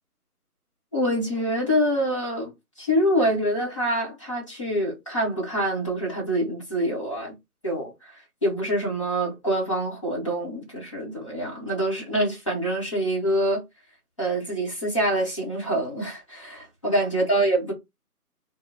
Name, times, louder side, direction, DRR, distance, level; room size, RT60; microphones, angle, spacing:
voice 1, 0.9-7.3 7.6-8.1 8.4-13.6 14.2-17.7, right 1 dB, 20° left, 0.8 m, -25 dB
2.6 x 2.0 x 3.5 m
figure-of-eight pair, 160°, 46 cm